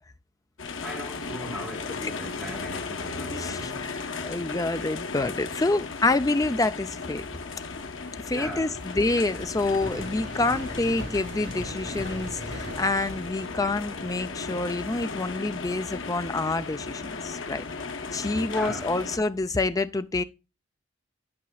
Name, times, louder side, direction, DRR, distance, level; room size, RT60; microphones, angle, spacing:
sound 1, 0.6-19.2, left 4 dB, 85° left, 1.0 m, -36 dB
voice 1, 0.8-3.8 8.3-8.8 18.4-18.9, equal, ahead, 3.9 m, -38 dB
sound 2, 3.1-19.6, equal, 60° right, 2.5 m, -44 dB
voice 2, 3.3-7.2 8.3-17.6 18.1-20.2, left 2 dB, 20° left, 0.5 m, -27 dB
11.5 x 5.3 x 2.3 m
head